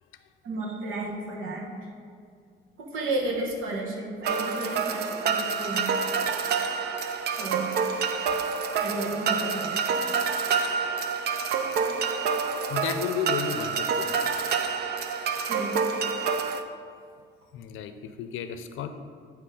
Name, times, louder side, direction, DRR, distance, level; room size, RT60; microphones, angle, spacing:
voice 1, 0.4-1.8 2.8-6.2 7.3-7.7 8.7-10.2 15.5-15.8, right 2 dB, 80° right, -1 dB, 1.4 m, -33 dB
sound 1, 4.2-16.6, right 5 dB, 55° right, 0.4 m, -27 dB
voice 2, 12.7-14.1 17.5-18.9, left 7 dB, 75° left, 8 dB, 0.5 m, -32 dB
9.4 x 3.1 x 4.9 m, 2.2 s
cardioid pair, 150°, 21 cm